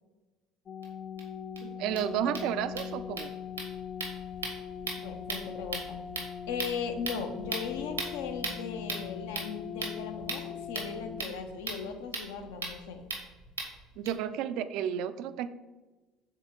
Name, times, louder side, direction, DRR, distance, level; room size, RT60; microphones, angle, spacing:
sound 1, 0.7-11.2, left 8 dB, 40° left, 0.3 m, -41 dB
sound 2, 0.8-0.9 1.2-1.3 1.6-1.7 1.9-14.1, right 3 dB, 90° right, 1.2 m, -40 dB
voice 1, 1.6-3.3 14.0-15.5, right 9 dB, 60° right, 13 dB, 0.4 m, -32 dB
voice 2, 5.0-6.0 6.5-13.1, left 5 dB, 70° left, 6 dB, 0.7 m, -38 dB
6.4 x 4.2 x 3.7 m, 1.2 s
figure-of-eight pair, 60°, 0 cm